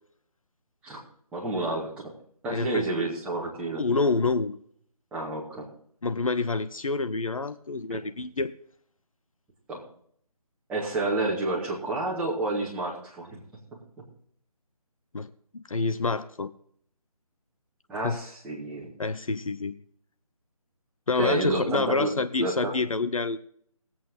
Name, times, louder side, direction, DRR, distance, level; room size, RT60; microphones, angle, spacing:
voice 1, 1.3-2.1 2.4-3.8 5.1-5.7 7.9-8.0 9.7-9.8 10.7-13.4 17.9-18.9 21.1-22.1 22.4-22.7, right 2 dB, 5° right, -7 dB, 2.3 m, -29 dB
voice 2, 2.5-2.8 3.8-4.6 6.0-8.5 15.1-16.5 18.0-18.2 19.0-19.7 21.1-23.4, left 3 dB, 60° left, 12 dB, 0.7 m, -27 dB
18.5 x 8.5 x 3.7 m, 0.62 s
figure-of-eight pair, 155°, 19 cm